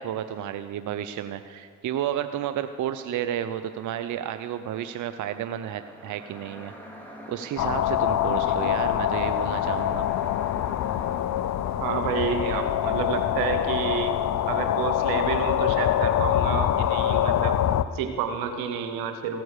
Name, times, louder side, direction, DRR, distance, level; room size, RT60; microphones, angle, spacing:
voice 1, 0.0-6.7 7.3-10.1, right 10 dB, 60° right, 10 dB, 0.6 m, -31 dB
sound 1, 3.5-14.9, equal, 5° left, 3.4 m, -47 dB
sound 2, 7.6-17.8, left 11 dB, 55° left, 0.6 m, -25 dB
voice 2, 11.8-14.1 14.5-17.6 17.9-19.4, right 7 dB, 85° right, 8 dB, 1.1 m, -29 dB
15.0 x 9.3 x 6.6 m, 2.2 s
hypercardioid pair, 55°, 33 cm